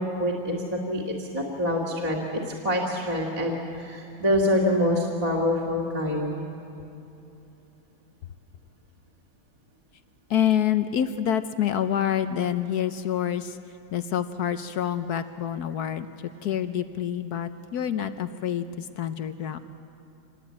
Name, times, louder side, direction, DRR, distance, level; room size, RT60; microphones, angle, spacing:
voice 1, 0.0-6.3, left 1 dB, 20° right, -1 dB, 2.3 m, -26 dB
voice 2, 10.3-13.6 13.9-16.1 16.4-19.6, left 9 dB, 65° left, 11 dB, 1.1 m, -27 dB
26.0 x 19.5 x 8.5 m, 2.9 s
omnidirectional pair, 2.1 m